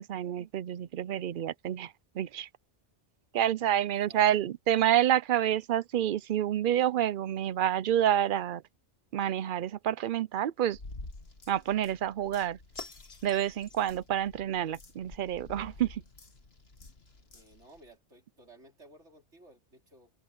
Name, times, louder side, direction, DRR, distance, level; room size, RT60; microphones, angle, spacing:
voice 1, 0.0-1.9 2.2-2.5 3.3-8.6 9.1-10.8 11.5-12.6 13.2-16.0, right 11 dB, 60° right, 0.6 m, -28 dB
voice 2, 3.9-4.4 17.3-20.1, right 2 dB, 90° right, 4.7 m, -55 dB
sound 1, 10.7-17.9, left 3 dB, 65° left, 2.2 m, -49 dB
omnidirectional pair, 1.2 m